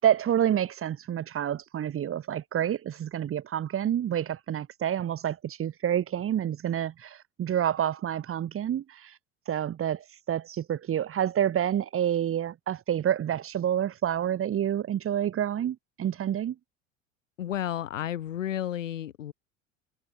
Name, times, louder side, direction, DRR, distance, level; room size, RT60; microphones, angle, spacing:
voice 1, 0.0-9.2 9.5-16.5, right 10 dB, 35° right, 4.0 m, -28 dB
voice 2, 17.4-19.3, left 11 dB, 70° left, 7.2 m, -32 dB
figure-of-eight pair, 75°, 39 cm